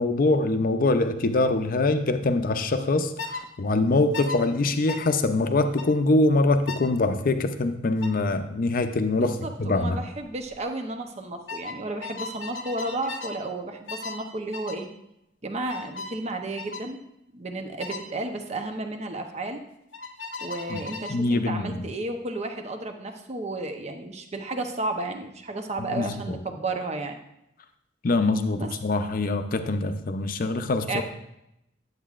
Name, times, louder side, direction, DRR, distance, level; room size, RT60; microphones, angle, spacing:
voice 1, 0.0-10.0 20.7-20.8 21.1-21.9 25.9-26.4 28.0-31.0, left 2 dB, 50° left, 7 dB, 0.5 m, -24 dB
sound 1, 3.2-3.4 4.1-4.4 4.9-5.1 5.8-6.0 6.7-6.9 8.0-8.2 9.7-9.9 10.2-10.6 11.5-13.4 13.9-14.2 14.5-14.8 15.7-16.2 16.6-16.9 17.8-18.1 19.9-21.2, left 4 dB, 85° left, 0.8 m, -37 dB
voice 2, 9.2-14.9 15.4-17.0 17.3-19.6 20.4-27.2 28.6-28.7 30.9-31.0, right 2 dB, 35° right, 5 dB, 0.8 m, -32 dB
10.0 x 8.1 x 2.4 m, 0.83 s
head